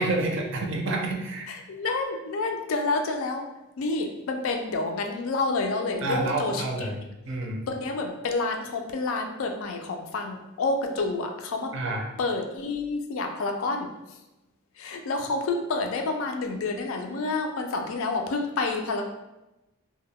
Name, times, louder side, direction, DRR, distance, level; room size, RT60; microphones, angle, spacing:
voice 1, 0.0-1.5 6.0-7.0 7.3-7.7 11.7-12.1, right 2 dB, 60° right, 1 dB, 0.4 m, -28 dB
voice 2, 1.5-3.4 3.8-7.0 7.7-11.7 12.2-13.9 14.8-19.0, left 3 dB, 70° left, 4 dB, 0.4 m, -29 dB
2.1 x 2.1 x 3.5 m, 0.98 s
head